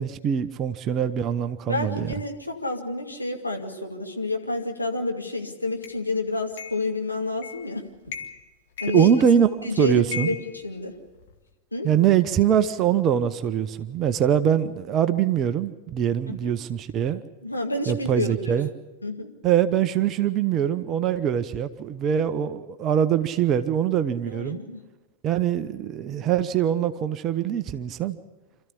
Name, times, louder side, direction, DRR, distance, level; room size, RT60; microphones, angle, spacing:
voice 1, 0.0-2.1 8.9-9.5 9.8-10.3 11.8-17.2 17.9-18.7 19.4-24.6 25.2-28.2, right 9 dB, 30° right, 11 dB, 0.9 m, -23 dB
voice 2, 1.7-7.9 8.8-9.2 9.6-10.9 11.7-11.9 16.3-16.5 17.4-18.6 19.0-19.3 24.3-24.8, left 2 dB, 85° left, 2 dB, 2.3 m, -29 dB
sound 1, 5.8-6.0 6.6-6.9 7.4-7.7 8.1-8.5 8.8-9.6 10.1-11.4, left 6 dB, 55° left, 2.1 m, -37 dB
27.0 x 14.0 x 8.6 m, 1.1 s
figure-of-eight pair, 90°, 0 cm